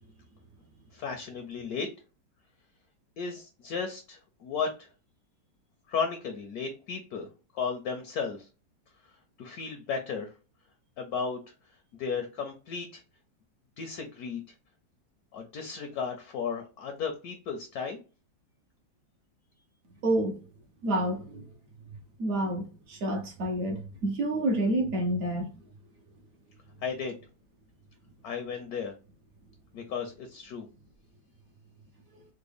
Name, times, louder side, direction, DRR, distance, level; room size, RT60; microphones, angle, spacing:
voice 1, 0.9-1.9 3.2-4.7 5.9-7.3 7.5-8.5 9.4-10.3 11.0-11.4 12.0-13.0 13.8-14.4 15.3-18.0 26.8-27.1 28.2-28.9 29.7-30.7, left 5 dB, 70° left, 0.9 m, -34 dB
voice 2, 20.0-20.4 20.8-21.5 22.2-25.5, right 1 dB, 65° right, 0.8 m, -28 dB
3.6 x 2.1 x 3.3 m
omnidirectional pair, 2.1 m